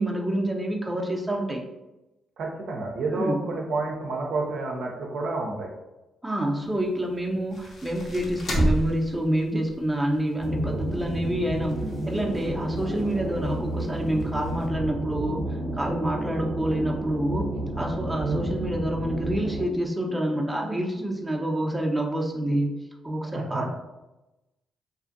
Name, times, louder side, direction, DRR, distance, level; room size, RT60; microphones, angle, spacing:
voice 1, 0.0-1.6 3.1-3.5 6.2-22.7 23.0-23.7, right 1 dB, 10° right, 0 dB, 0.6 m, -27 dB
voice 2, 2.4-5.7 18.2-18.5 23.3-23.7, right 3 dB, 70° right, 0 dB, 0.5 m, -30 dB
sound 1, 6.6-14.7, right 1 dB, 55° left, 0.7 m, -34 dB
sound 2, 10.4-19.7, right 1 dB, 45° right, 0.8 m, -31 dB
2.6 x 2.4 x 2.5 m, 1.0 s
hypercardioid pair, 50°, 0 cm